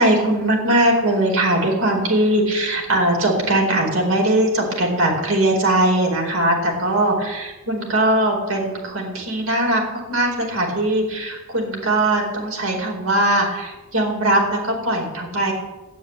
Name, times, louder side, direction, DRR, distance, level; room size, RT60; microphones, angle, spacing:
voice 1, 0.0-15.5, right 1 dB, 85° right, 0 dB, 4.6 m, -20 dB
13.5 x 8.9 x 9.5 m, 1.1 s
head